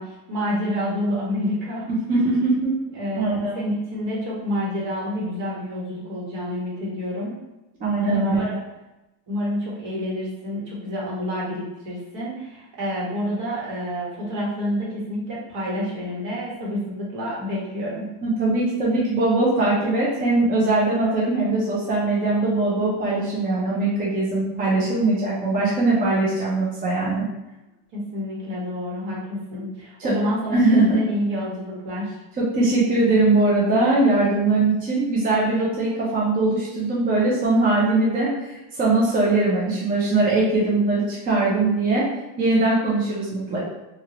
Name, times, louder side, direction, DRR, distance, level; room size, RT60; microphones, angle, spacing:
voice 1, 0.0-2.4 2.9-7.4 8.0-8.6 9.3-18.1 27.9-32.2, equal, 55° right, -6 dB, 1.3 m, -28 dB
voice 2, 1.9-2.8 3.2-3.6 7.8-8.3 18.2-27.3 30.0-30.1 30.5-31.0 32.4-42.0 42.4-43.6, right 2 dB, 20° right, -6 dB, 0.4 m, -21 dB
2.8 x 2.5 x 2.8 m, 0.98 s
cardioid pair, 155°, 48 cm